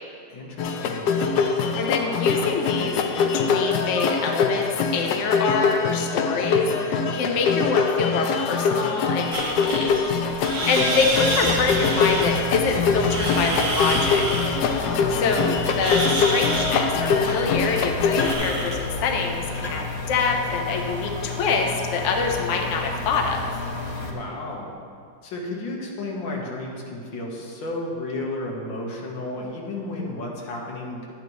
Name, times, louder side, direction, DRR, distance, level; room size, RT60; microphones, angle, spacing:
voice 1, 0.3-1.2 14.8-15.6 24.0-24.7 25.2-31.1, left 2 dB, 85° left, -1 dB, 2.0 m, -33 dB
sound 1, 0.6-18.3, left 5 dB, 70° left, 1.1 m, -23 dB
voice 2, 1.8-3.0 3.3-9.9 10.2-14.5 15.2-23.5, left 4 dB, 50° left, 2 dB, 1.0 m, -26 dB
sound 2, 9.3-21.1, right 2 dB, 70° right, 1.9 m, -30 dB
sound 3, 11.0-24.1, left 3 dB, 25° left, 0.5 m, -32 dB
11.5 x 9.2 x 3.1 m, 2.3 s
omnidirectional pair, 2.0 m